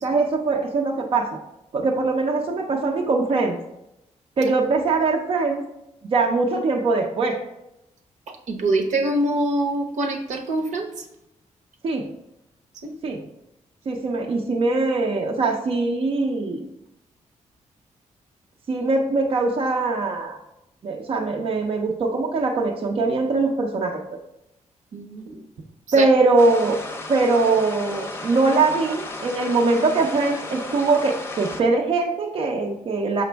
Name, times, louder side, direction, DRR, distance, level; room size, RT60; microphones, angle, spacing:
voice 1, 0.0-1.4 1.7-3.6 4.4-5.6 6.0-7.4 11.8-12.1 13.0-13.2 13.9-16.6 18.7-20.4 20.8-24.0 25.9-26.8 27.1-33.2, right 3 dB, 50° right, 1 dB, 0.6 m, -22 dB
voice 2, 8.3-11.1 12.8-12.9 24.9-25.4 26.0-26.1, right 2 dB, 75° right, 4 dB, 0.9 m, -25 dB
sound 1, 26.4-31.6, left 2 dB, 20° left, 0.7 m, -34 dB
6.4 x 5.1 x 3.4 m, 0.87 s
wide cardioid pair, 130°, 13 cm